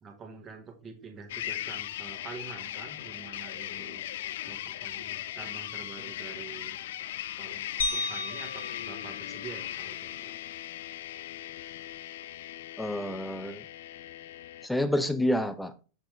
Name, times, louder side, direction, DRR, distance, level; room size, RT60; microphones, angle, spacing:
voice 1, 0.0-4.0 4.4-6.8 7.4-10.4, right 5 dB, 25° right, 4 dB, 1.6 m, -46 dB
sound 1, 1.3-14.7, left 13 dB, 55° left, 0.3 m, -39 dB
sound 2, 7.8-10.2, left 3 dB, 70° left, 1.9 m, -35 dB
voice 2, 12.8-13.7 14.6-15.7, left 1 dB, 5° left, 11 dB, 0.8 m, -28 dB
7.0 x 6.0 x 3.4 m, 0.34 s
figure-of-eight pair, 90°, 0 cm